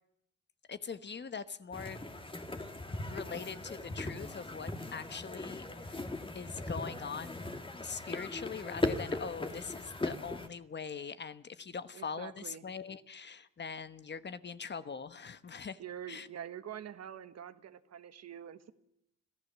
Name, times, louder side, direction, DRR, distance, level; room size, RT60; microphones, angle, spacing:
voice 1, 0.7-2.0 3.1-6.0 6.3-7.5 7.8-15.8 16.1-16.3, left 6 dB, 35° left, 12 dB, 1.2 m, -42 dB
sound 1, 1.7-10.5, left 2 dB, 15° left, 2.0 m, -39 dB
voice 2, 11.9-12.6 15.8-18.7, right 9 dB, 60° right, 11 dB, 1.5 m, -45 dB
26.0 x 15.5 x 7.4 m, 0.79 s
cardioid pair, 90°, 30 cm